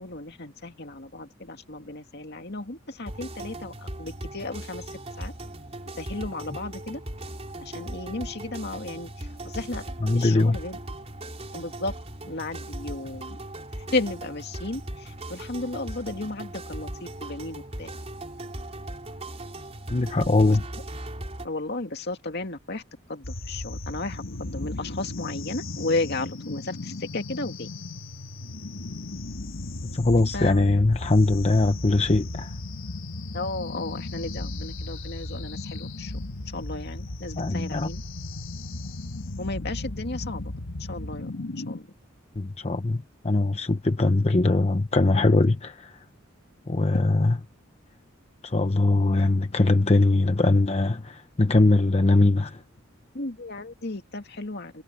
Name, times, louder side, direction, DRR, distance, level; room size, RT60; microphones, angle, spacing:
voice 1, 0.0-3.7 4.0-4.8 5.2-5.3 6.0-7.0 7.6-9.8 10.1-10.8 11.5-11.9 12.3-13.4 13.9-17.9 20.5-20.6 21.4-22.8 23.1-27.7 30.3-30.6 33.3-36.2 36.5-38.0 39.4-40.5 40.9-41.3 41.7-41.9 53.1-54.8, left 2 dB, 55° left, 2.3 m, -34 dB
sound 1, 3.1-21.5, right 1 dB, 30° right, 4.0 m, -38 dB
voice 2, 10.0-10.6 19.9-20.6 29.9-32.5 37.4-37.9 42.4-45.9 46.7-47.3 48.4-52.6, left 2 dB, 30° left, 0.8 m, -21 dB
sound 2, 23.2-41.8, left 2 dB, 75° left, 1.5 m, -36 dB
head